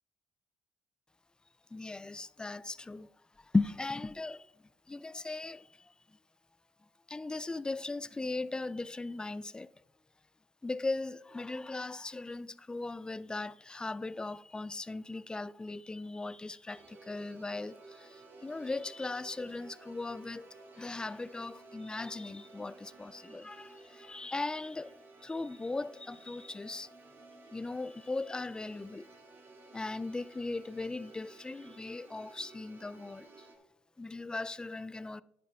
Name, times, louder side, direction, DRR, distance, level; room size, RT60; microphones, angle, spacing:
voice 1, 1.7-3.1 3.4-4.5 4.9-5.9 7.1-9.7 10.6-20.5 20.8-24.9 25.2-26.9 27.5-29.1 29.7-33.5 34.0-35.2, left 3 dB, 20° left, 0.4 m, -38 dB
sound 1, 16.7-33.6, right 3 dB, 55° right, 2.0 m, -55 dB
10.5 x 10.0 x 2.9 m
hypercardioid pair, 55°, 5 cm